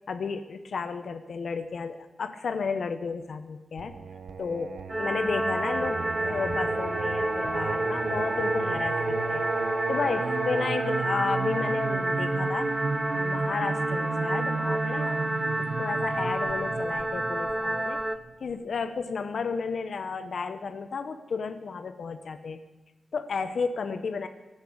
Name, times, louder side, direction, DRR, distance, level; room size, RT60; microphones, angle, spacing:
voice 1, 0.1-3.9 4.4-9.0 9.3-9.5 9.9-12.7 13.1-18.0 18.4-22.6 23.1-24.3, left 5 dB, 65° left, 8 dB, 0.9 m, -33 dB
Singing, 3.8-18.5, right 5 dB, 80° right, 0.9 m, -34 dB
sound 1, 4.9-18.2, right 1 dB, 10° right, 0.6 m, -29 dB
18.0 x 8.2 x 8.5 m, 1.1 s
wide cardioid pair, 140°, 0 cm